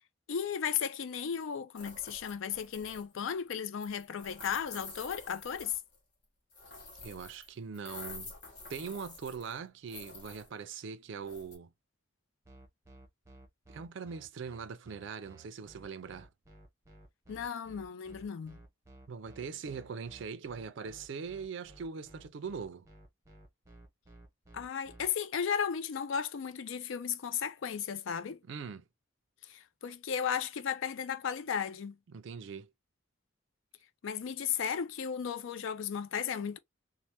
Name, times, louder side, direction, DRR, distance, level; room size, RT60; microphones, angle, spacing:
voice 1, 0.3-5.8 17.3-18.6 24.5-28.4 29.5-31.9 34.0-36.6, left 7 dB, 70° left, 0.4 m, -35 dB
sound 1, 1.8-3.2 3.8-6.0 6.5-7.5 7.7-9.6 9.9-10.5 11.2-11.6, left 3 dB, 55° left, 1.7 m, -48 dB
voice 2, 7.0-8.3 8.7-11.7 13.7-16.3 19.1-22.9 28.5-28.8 32.1-32.7, right 5 dB, 60° right, 0.4 m, -41 dB
sound 2, 12.4-25.1, right 2 dB, 15° right, 0.7 m, -55 dB
3.2 x 2.0 x 2.8 m
head